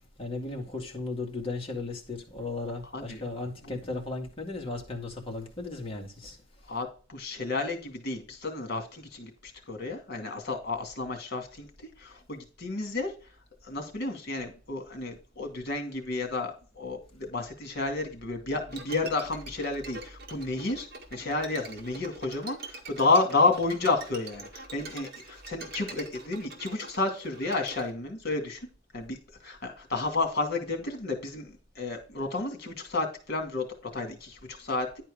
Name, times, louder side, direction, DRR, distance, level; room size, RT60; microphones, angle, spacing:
voice 1, 0.2-6.4, left 3 dB, 30° left, 2.0 m, -36 dB
voice 2, 6.7-11.7 12.0-13.1 13.6-28.6 28.9-29.2 29.4-34.9, left 3 dB, 55° left, 2.3 m, -31 dB
Bowed string instrument, 18.7-27.9, right 3 dB, 50° right, 1.8 m, -44 dB
10.5 x 4.5 x 5.0 m
head